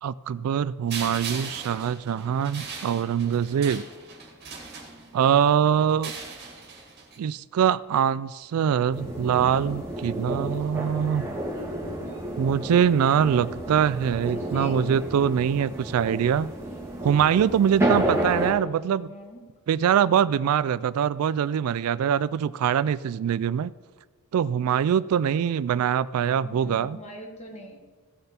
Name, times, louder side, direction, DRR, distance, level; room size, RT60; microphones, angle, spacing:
voice 1, 0.0-3.8 5.1-6.1 7.2-11.3 12.4-16.5 17.0-19.1 19.7-23.7 24.3-27.0, right 8 dB, 70° right, 18 dB, 0.3 m, -23 dB
sound 1, 0.9-5.4 5.9-7.2, right 5 dB, 50° right, 2.1 m, -39 dB
voice 2, 5.6-6.0 14.3-14.8 19.1-19.4 26.4-27.8, equal, 30° left, 2 dB, 1.6 m, -43 dB
sound 2, 8.9-18.5, right 1 dB, 10° right, 2.1 m, -31 dB
16.0 x 6.7 x 4.3 m, 1.4 s
head